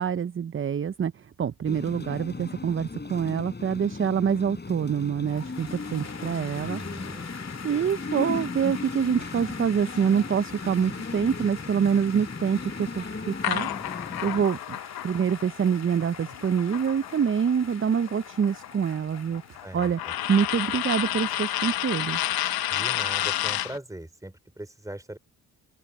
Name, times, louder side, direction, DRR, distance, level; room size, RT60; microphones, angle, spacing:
voice 1, 0.0-6.8 7.6-14.8 15.0-19.4 19.7-20.0 20.3-22.2, right 7 dB, 30° right, 0.8 m, -26 dB
sound 1, 1.6-14.4, left 3 dB, 25° left, 4.7 m, -37 dB
sound 2, 5.2-20.7, left 6 dB, 40° left, 2.5 m, -43 dB
voice 2, 6.6-7.3 19.6-20.1 22.7-25.2, right 1 dB, 10° right, 4.0 m, -40 dB
sound 3, 13.4-17.5 17.8-23.8, left 13 dB, 60° left, 1.2 m, -30 dB
open air
supercardioid pair, 60°, 40 cm